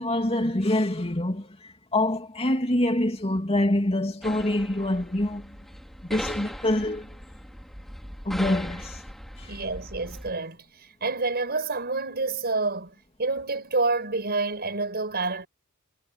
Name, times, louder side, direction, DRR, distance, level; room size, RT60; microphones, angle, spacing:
voice 1, 0.0-5.6 6.0-7.1 8.2-9.0 9.4-9.6, left 1 dB, 30° left, 2.8 m, -26 dB
sound 1, 4.2-10.3, equal, ahead, 2.7 m, -39 dB
voice 2, 9.4-15.5, right 3 dB, 50° right, 5.9 m, -28 dB
head